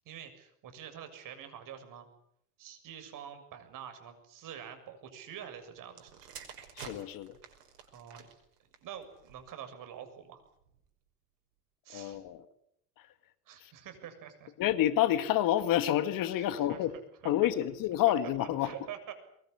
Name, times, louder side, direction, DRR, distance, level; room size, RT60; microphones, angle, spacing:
voice 1, 0.1-2.1 2.6-6.3 7.9-8.3 8.8-10.4 11.8-12.2 13.5-14.5 16.4-16.9 17.2-17.3 18.6-19.1, right 9 dB, 45° right, 7 dB, 7.1 m, -46 dB
sound 1, 5.9-9.7 10.5-10.8, right 7 dB, 80° right, 5.6 m, -50 dB
voice 2, 6.8-7.4 11.9-12.4 13.0-13.1 13.6-13.7 14.6-16.9 17.2-18.7, left 12 dB, 45° left, 12 dB, 2.1 m, -28 dB
23.5 x 21.5 x 9.9 m, 0.74 s
hypercardioid pair, 90°, 46 cm